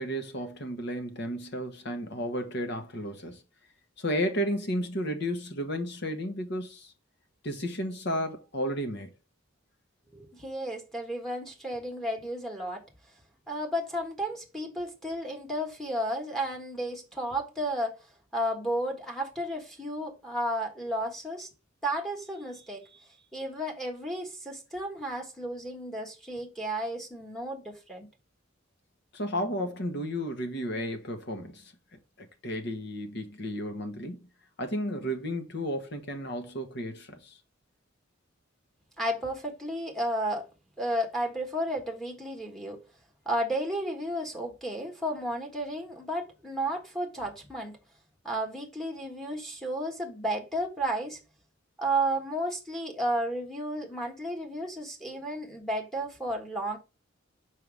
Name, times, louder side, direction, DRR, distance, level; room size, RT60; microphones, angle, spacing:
voice 1, 0.0-3.4 4.0-6.9 7.4-9.1 29.1-31.7 32.2-34.2 34.6-37.4, equal, 60° left, 1.4 m, -33 dB
voice 2, 10.1-12.8 13.5-18.0 18.3-21.5 21.8-22.9 23.3-28.1 39.0-40.5 40.8-42.8 43.2-47.8 48.2-51.2 51.8-56.8, right 1 dB, ahead, 1.4 m, -33 dB
5.7 x 4.9 x 3.5 m
head